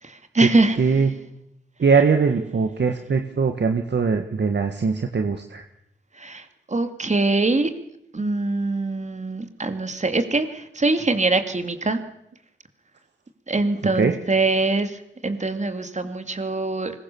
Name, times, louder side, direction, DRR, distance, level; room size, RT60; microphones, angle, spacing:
voice 1, 0.0-1.1 6.2-7.7 8.1-12.0 13.5-16.9, right 2 dB, 35° right, 8 dB, 2.8 m, -23 dB
voice 2, 0.8-1.1 1.8-5.6 13.9-14.1, right 5 dB, 65° right, 6 dB, 1.7 m, -21 dB
25.0 x 21.5 x 7.2 m, 0.78 s
wide cardioid pair, 90°, 20 cm